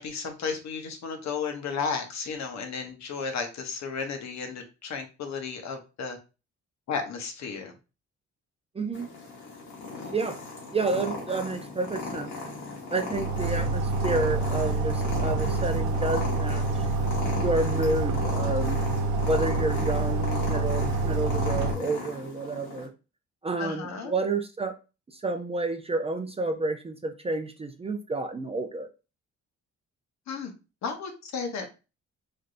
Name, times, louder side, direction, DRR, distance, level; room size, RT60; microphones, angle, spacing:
voice 1, 0.0-6.2 6.9-7.7 9.8-10.2 13.5-13.6 23.6-24.1 30.3-30.5 30.8-31.7, left 5 dB, 65° left, 5 dB, 0.9 m, -34 dB
voice 2, 8.8-9.1 10.1-10.4 10.7-12.3 12.9-16.6 17.4-18.8 19.2-22.9 23.4-24.7 25.2-28.9, right 3 dB, 20° right, 6 dB, 0.4 m, -30 dB
Purr, 8.9-22.9, left 3 dB, 85° left, 1.3 m, -36 dB
sound 1, 13.1-21.7, right 3 dB, 80° right, 0.6 m, -27 dB
3.3 x 2.6 x 2.5 m, 0.30 s
cardioid pair, 90°, 30 cm